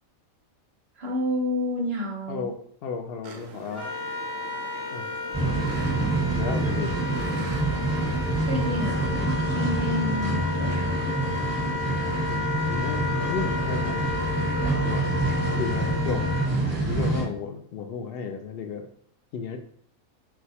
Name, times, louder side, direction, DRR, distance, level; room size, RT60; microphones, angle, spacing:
voice 1, 0.9-2.5 8.4-11.2, left 1 dB, 50° right, 1 dB, 1.1 m, -30 dB
voice 2, 2.3-3.9 4.9-5.1 6.3-7.0 12.3-14.2 14.8-15.2 15.6-16.3 16.9-18.9 19.3-19.6, left 5 dB, 65° left, 6 dB, 0.6 m, -33 dB
Penguin at Brown Bluff, 3.2-9.1, right 5 dB, 75° right, 1.0 m, -44 dB
Wind instrument woodwind instrument, 3.7-16.5, left 4 dB, 45° left, 1.3 m, -33 dB
sound 1, 5.3-17.2, right 2 dB, 15° right, 1.4 m, -26 dB
4.2 x 2.2 x 4.2 m, 0.63 s
omnidirectional pair, 1.4 m